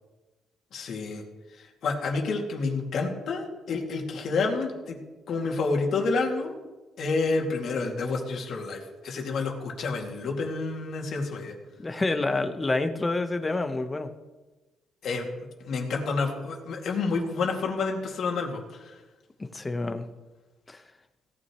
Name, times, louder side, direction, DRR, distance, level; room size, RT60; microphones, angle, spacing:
voice 1, 0.7-1.2 1.5-5.0 5.3-6.5 7.0-11.5 15.0-15.3 15.6-18.9, left 3 dB, 65° left, 1 dB, 2.4 m, -29 dB
voice 2, 11.8-14.1 19.4-20.0 20.7-20.8, left 2 dB, 20° left, 9 dB, 1.0 m, -28 dB
17.5 x 9.5 x 3.1 m, 1.2 s
cardioid pair, 90°, 0 cm